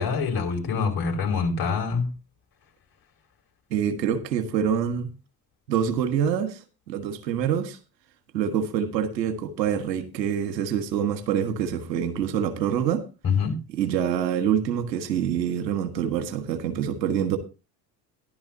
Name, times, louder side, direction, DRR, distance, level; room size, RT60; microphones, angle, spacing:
voice 1, 0.0-2.2 13.2-13.6, left 5 dB, 50° left, 5.2 m, -25 dB
voice 2, 3.7-5.1 5.7-7.8 8.3-13.0 13.7-17.4, right 8 dB, 80° right, 1.6 m, -26 dB
14.5 x 11.5 x 2.7 m
hypercardioid pair, 60°, 49 cm